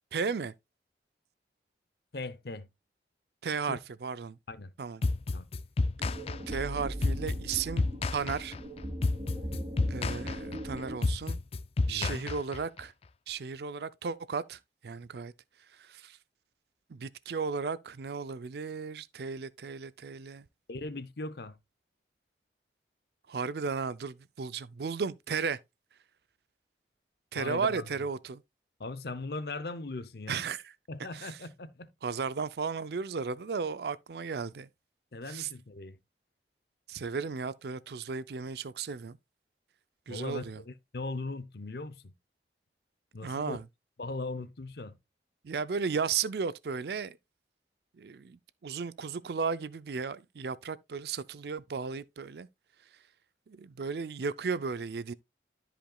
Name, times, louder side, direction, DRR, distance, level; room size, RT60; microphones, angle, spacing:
voice 1, 0.1-0.5 3.4-4.4 4.8-5.0 6.5-7.9 8.1-8.6 9.9-11.4 11.9-12.9 13.3-15.3 15.8-16.2 16.9-20.5 23.3-25.6 27.3-28.4 30.3-30.6 31.1-31.4 32.0-34.7 35.3-35.5 36.9-39.2 40.1-40.6 43.2-43.6 45.4-47.2 48.0-52.5 53.5-55.1, right 5 dB, 65° right, 0.4 m, -35 dB
voice 2, 2.1-2.7 3.7-3.8 4.5-4.7 5.3-5.5 11.9-12.3 20.7-21.6 27.4-27.9 28.8-30.4 30.9-31.9 35.1-36.0 40.1-42.1 43.1-43.6 44.0-44.9, left 2 dB, 65° left, 0.7 m, -39 dB
sound 1, 5.0-12.8, left 3 dB, 35° left, 0.3 m, -31 dB
sound 2, 6.0-11.0, equal, 35° right, 1.5 m, -39 dB
13.5 x 5.1 x 2.3 m
head